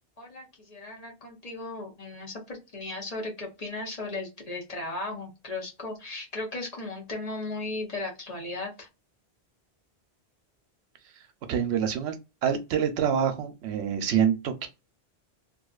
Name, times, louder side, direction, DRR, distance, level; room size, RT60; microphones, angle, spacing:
voice 1, 0.2-8.9, left 2 dB, 40° left, 0.9 m, -36 dB
voice 2, 11.5-14.7, right 8 dB, 90° right, 0.9 m, -26 dB
2.5 x 2.4 x 2.3 m
omnidirectional pair, 1.1 m